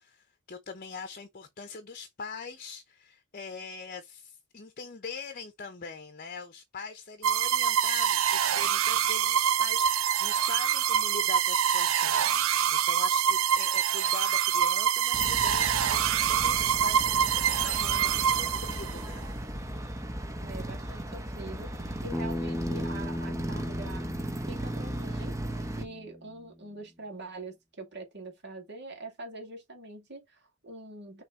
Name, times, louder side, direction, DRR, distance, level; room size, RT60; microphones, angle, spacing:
voice 1, 0.0-19.3, left 4 dB, 40° left, 0.8 m, -42 dB
sound 1, 7.2-19.1, right 9 dB, 70° right, 0.5 m, -25 dB
sound 2, 15.1-25.8, right 1 dB, 15° right, 0.9 m, -36 dB
voice 2, 20.4-24.2 24.5-31.2, right 2 dB, 55° right, 2.5 m, -44 dB
Bass guitar, 22.1-26.4, left 1 dB, 10° left, 0.7 m, -37 dB
6.2 x 3.4 x 4.5 m
head